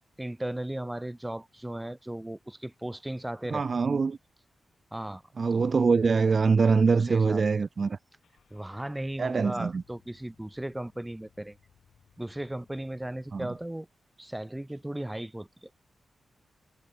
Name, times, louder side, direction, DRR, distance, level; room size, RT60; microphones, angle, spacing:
voice 1, 0.2-3.6 4.9-5.2 5.5-5.7 6.9-7.4 8.5-11.6 12.2-13.9 14.2-15.7, right 1 dB, 10° right, 1.5 m, -36 dB
voice 2, 3.5-4.2 5.4-8.0 9.2-9.8 13.3-13.5, right 4 dB, 40° right, 0.3 m, -24 dB
Car / Engine starting, 8.2-13.6, left 8 dB, 85° left, 4.6 m, -64 dB
wide cardioid pair, 145°, 0 cm